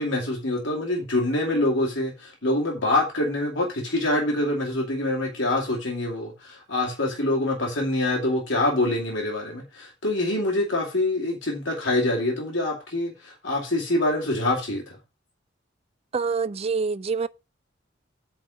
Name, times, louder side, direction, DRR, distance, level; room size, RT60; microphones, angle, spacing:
voice 1, 0.0-15.0, left 1 dB, 75° left, 2.5 m, -25 dB
voice 2, 16.1-17.3, right 5 dB, 30° right, 0.4 m, -26 dB
9.4 x 4.8 x 5.0 m
head